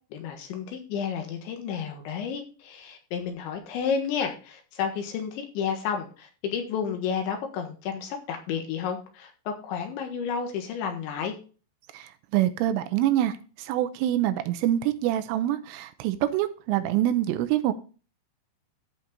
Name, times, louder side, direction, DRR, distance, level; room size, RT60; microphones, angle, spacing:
voice 1, 0.1-11.4, left 7 dB, 70° left, 4 dB, 3.5 m, -31 dB
voice 2, 11.9-17.7, right 13 dB, 80° right, 10 dB, 3.3 m, -25 dB
14.0 x 5.2 x 4.0 m, 0.35 s
omnidirectional pair, 5.8 m